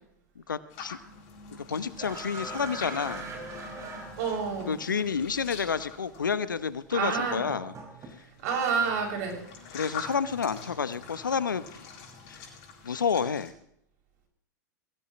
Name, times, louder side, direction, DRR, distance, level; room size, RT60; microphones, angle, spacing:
voice 1, 0.4-1.0 1.5-3.3 4.7-7.7 9.7-11.9 12.3-12.5 12.8-13.5, left 6 dB, 90° left, 15 dB, 1.0 m, -30 dB
sound 1, 0.7-6.9 8.0-13.5, left 5 dB, 55° left, 6.1 m, -45 dB
sound 2, 2.0-4.8 5.9-6.0 7.1-8.9 9.2-9.6, right 2 dB, 30° right, 6.3 m, -41 dB
voice 2, 4.2-4.7 6.9-7.4 8.4-9.4, right 5 dB, 60° right, 1 dB, 6.8 m, -28 dB
23.0 x 17.0 x 3.2 m, 0.71 s
hypercardioid pair, 95°, 10 cm